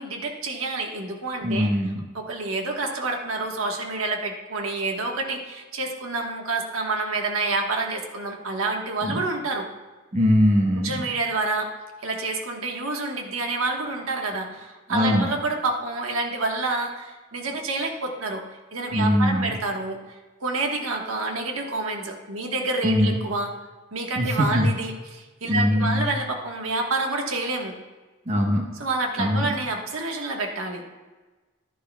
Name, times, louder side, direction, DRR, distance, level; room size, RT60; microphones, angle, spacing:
voice 1, 0.0-9.7 10.7-11.7 12.0-18.4 18.7-20.0 20.4-23.5 23.9-27.7 28.7-30.8, right 3 dB, 90° right, 2 dB, 1.3 m, -28 dB
voice 2, 1.4-2.0 9.0-9.2 10.1-11.0 14.9-15.3 18.9-19.5 22.8-23.2 24.2-24.7 25.5-26.1 28.3-28.7 29.2-29.5, left 1 dB, 35° right, 2 dB, 1.1 m, -21 dB
11.5 x 11.0 x 2.3 m, 1.2 s
head